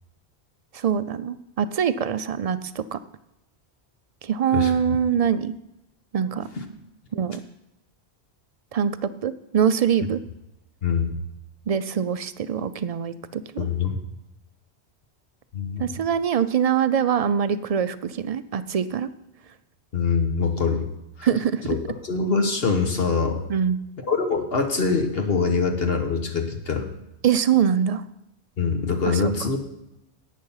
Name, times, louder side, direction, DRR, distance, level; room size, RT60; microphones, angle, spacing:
voice 1, 0.7-3.0 4.2-5.5 6.1-6.5 7.1-7.4 8.7-10.2 11.7-13.4 15.8-19.1 21.2-21.6 23.5-23.8 27.2-28.0 29.1-29.2, right 8 dB, 55° right, 13 dB, 0.4 m, -23 dB
voice 2, 10.8-11.2 13.6-14.0 15.5-15.9 19.9-20.9 21.2-21.3 21.7-21.8 22.0-23.4 24.0-26.9 28.6-29.6, left 5 dB, 60° left, 4 dB, 1.4 m, -24 dB
11.5 x 8.3 x 5.6 m, 0.90 s
omnidirectional pair, 1.1 m